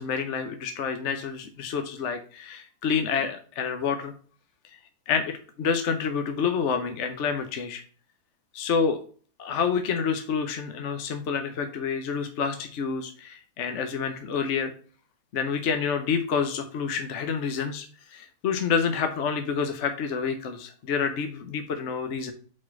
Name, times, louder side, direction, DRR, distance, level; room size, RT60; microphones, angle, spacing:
voice 1, 0.0-4.1 5.1-7.8 8.5-9.0 9.4-14.7 15.3-17.9 18.1-22.3, left 6 dB, 55° left, 7 dB, 1.0 m, -28 dB
4.8 x 4.3 x 5.8 m, 0.40 s
omnidirectional pair, 1.8 m